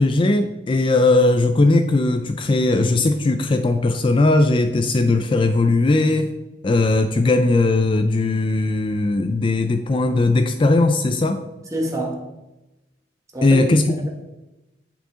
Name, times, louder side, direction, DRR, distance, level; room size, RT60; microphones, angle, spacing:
voice 1, 0.0-6.3 6.6-11.4 13.4-14.0, left 2 dB, 30° left, 8 dB, 0.4 m, -18 dB
voice 2, 11.7-12.3 13.3-13.7, right 1 dB, 20° right, 0 dB, 1.6 m, -26 dB
8.7 x 5.5 x 3.7 m, 1.0 s
head